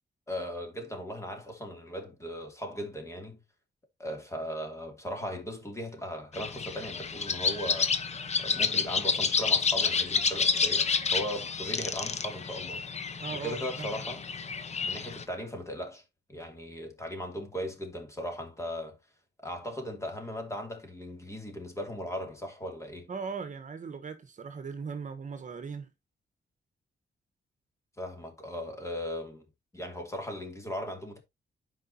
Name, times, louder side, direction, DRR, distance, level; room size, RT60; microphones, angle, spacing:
voice 1, 0.3-3.4 4.0-7.9 8.4-14.2 14.8-16.0 16.3-19.0 19.4-23.1 28.0-29.4 29.7-31.2, equal, 15° left, 2.8 m, -38 dB
sound 1, 6.3-15.2, left 5 dB, 40° left, 1.0 m, -29 dB
voice 2, 13.2-14.0 23.1-25.9, right 5 dB, 45° right, 1.3 m, -39 dB
12.0 x 5.2 x 2.8 m
wide cardioid pair, 130°, 18 cm